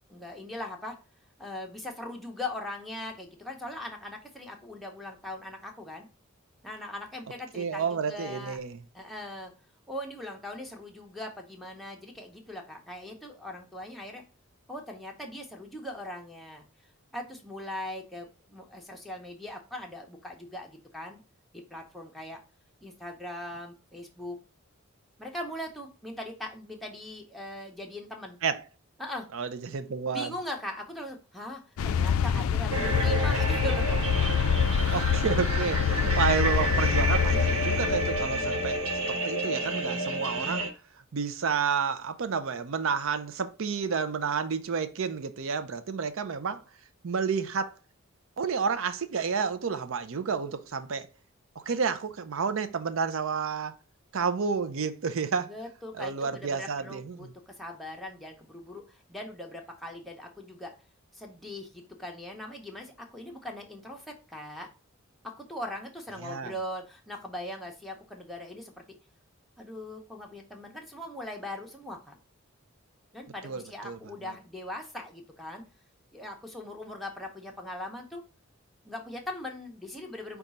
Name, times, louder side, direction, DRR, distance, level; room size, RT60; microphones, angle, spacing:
voice 1, 0.1-0.9 1.4-6.1 6.6-8.6 8.9-9.5 9.9-14.2 14.7-16.6 17.1-21.2 21.5-22.4 22.8-24.4 25.2-28.4 29.0-29.3 30.1-34.0 55.3-60.7 61.1-64.7 65.2-68.8 69.6-72.2 73.1-75.6 76.1-78.2 78.8-80.4, left 1 dB, ahead, 0.7 m, -40 dB
voice 2, 7.5-8.8 28.4-28.6 29.3-30.3 34.9-38.8 39.1-40.7 41.1-46.6 47.0-47.7 48.4-51.1 51.6-53.8 54.1-55.5 56.0-57.3 66.2-66.5 73.4-74.0, right 5 dB, 65° right, 0.5 m, -30 dB
sound 1, 31.8-39.0, left 7 dB, 75° left, 0.4 m, -26 dB
sound 2, 32.7-40.7, right 2 dB, 85° right, 1.2 m, -30 dB
5.1 x 2.3 x 4.1 m
head